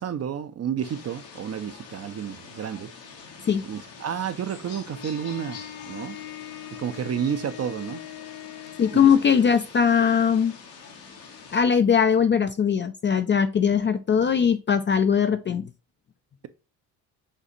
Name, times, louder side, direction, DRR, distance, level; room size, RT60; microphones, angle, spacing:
voice 1, 0.0-2.9 3.7-6.2 6.7-8.0 8.9-9.1, right 8 dB, 35° right, 0.5 m, -31 dB
sound 1, 0.8-11.6, left 5 dB, 80° left, 1.3 m, -45 dB
Bowed string instrument, 4.9-9.3, left 12 dB, 65° left, 0.9 m, -41 dB
voice 2, 8.8-10.5 11.5-15.7, left 7 dB, 30° left, 0.4 m, -20 dB
6.5 x 2.4 x 2.7 m
supercardioid pair, 65°, 43 cm